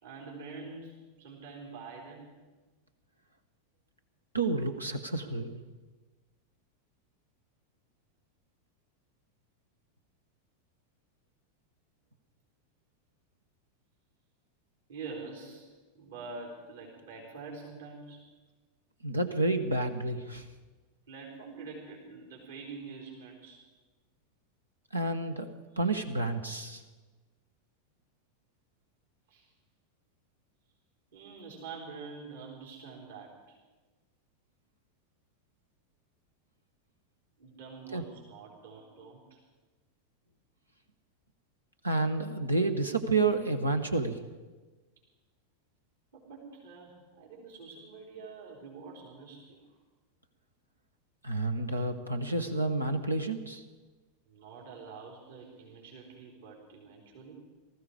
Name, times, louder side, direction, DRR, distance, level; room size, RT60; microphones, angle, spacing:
voice 1, 0.0-2.3 14.9-18.2 21.1-23.6 25.7-25.8 29.3-29.5 31.1-33.6 37.4-39.4 46.1-49.8 54.3-57.4, right 4 dB, 70° right, -3 dB, 4.1 m, -46 dB
voice 2, 4.3-5.6 19.0-20.4 24.9-26.8 37.9-38.0 41.8-44.2 51.2-53.6, right 2 dB, 90° right, 7 dB, 1.2 m, -30 dB
19.0 x 14.5 x 5.0 m, 1.3 s
figure-of-eight pair, 90°, 0 cm